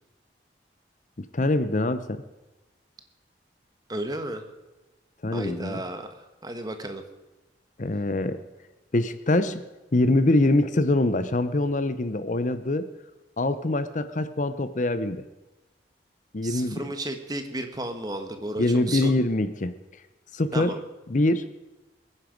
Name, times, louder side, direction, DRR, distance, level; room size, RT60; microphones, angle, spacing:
voice 1, 1.2-2.2 5.2-5.8 7.8-8.4 8.9-9.6 9.9-12.9 13.4-15.2 16.3-16.9 18.6-19.7 20.3-20.7 21.1-21.5, left 2 dB, 45° left, 12 dB, 0.7 m, -24 dB
voice 2, 3.9-4.4 5.3-7.0 16.4-19.1 20.5-20.8, right 1 dB, 20° right, 7 dB, 1.3 m, -33 dB
22.0 x 10.0 x 5.2 m, 1.1 s
head